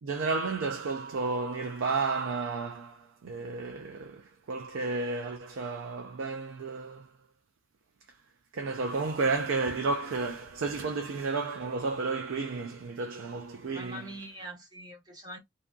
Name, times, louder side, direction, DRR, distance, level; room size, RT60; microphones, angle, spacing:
voice 1, 0.0-7.1 8.5-14.1, right 3 dB, 85° right, 0.4 m, -32 dB
voice 2, 13.7-15.4, right 1 dB, 20° right, 1.0 m, -43 dB
2.6 x 2.6 x 2.2 m
head